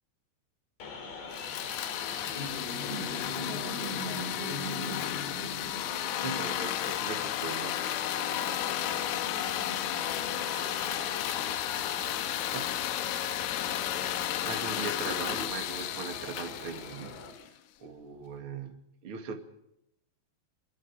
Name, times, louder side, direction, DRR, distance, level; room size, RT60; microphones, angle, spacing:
sound 1, 0.8-17.3, left 2 dB, 50° left, 5.1 m, -41 dB
sound 2, 1.3-17.5, left 12 dB, 75° left, 3.6 m, -33 dB
voice 1, 3.4-5.3 8.6-9.6 10.2-11.0 11.9-13.4, right 5 dB, 75° right, 5.4 m, -51 dB
voice 2, 5.9-7.8 12.2-12.7 13.9-17.2 17.8-19.4, right 5 dB, 40° right, 2.1 m, -40 dB
27.0 x 24.5 x 5.0 m
omnidirectional pair, 5.8 m